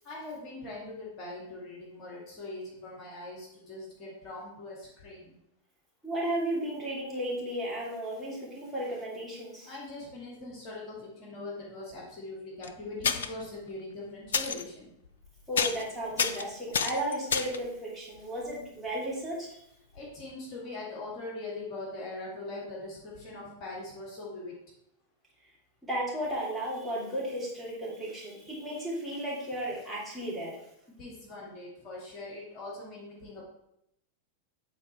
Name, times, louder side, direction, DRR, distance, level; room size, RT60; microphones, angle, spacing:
voice 1, 0.0-5.3 9.6-14.9 19.9-24.5 30.9-33.4, left 2 dB, 35° left, -3 dB, 2.0 m, -41 dB
voice 2, 6.0-9.7 15.5-19.6 25.9-30.6, right 1 dB, 5° right, -7 dB, 2.8 m, -34 dB
sound 1, 12.6-12.7 13.0-13.4 14.3-14.6 15.1-15.3 15.6-15.9 16.2-17.7 20.0-20.1 20.3-20.4, left 6 dB, 65° left, 0.4 m, -29 dB
8.4 x 4.1 x 4.3 m, 0.77 s
figure-of-eight pair, 90°, 0 cm